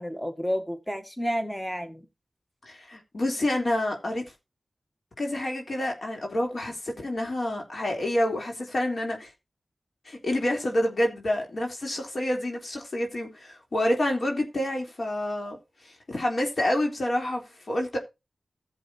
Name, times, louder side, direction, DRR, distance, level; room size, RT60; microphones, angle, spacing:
voice 1, 0.0-2.0, equal, 5° left, 1.7 m, -30 dB
voice 2, 2.6-4.2 5.2-9.3 10.1-15.6 15.8-17.4 17.7-18.0, left 1 dB, 65° left, 3.5 m, -28 dB
15.5 x 7.5 x 2.9 m
cardioid pair, 45°, 0 cm